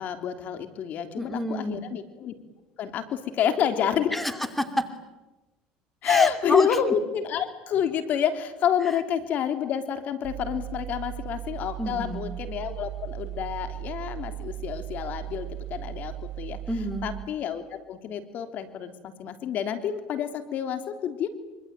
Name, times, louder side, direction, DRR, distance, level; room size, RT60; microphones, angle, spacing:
voice 1, 0.0-2.3 2.8-4.2 6.0-16.6 17.0-21.3, left 9 dB, 55° left, 8 dB, 3.4 m, -28 dB
voice 2, 1.1-1.8 4.1-4.9 6.0-6.7 8.8-9.0 11.8-12.3 16.7-17.1, equal, 5° left, 8 dB, 2.8 m, -28 dB
Mechanical fan, 10.2-17.2, right 14 dB, 65° right, 3.0 m, -37 dB
25.5 x 25.5 x 9.1 m, 1.1 s
supercardioid pair, 100°, 3 cm